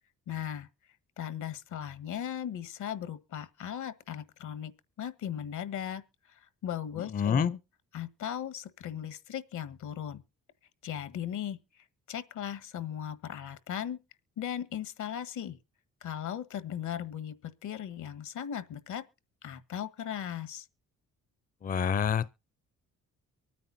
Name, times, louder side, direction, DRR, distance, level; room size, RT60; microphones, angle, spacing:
voice 1, 0.3-0.7 1.2-4.7 5.0-7.6 7.9-10.2 10.8-11.6 12.1-14.0 14.4-15.6 16.0-19.0 19.4-20.7, left 9 dB, 80° left, 1.5 m, -37 dB
voice 2, 7.1-7.5 21.6-22.3, left 7 dB, 30° left, 0.5 m, -27 dB
24.0 x 9.3 x 2.7 m
cardioid pair, 90°, 30 cm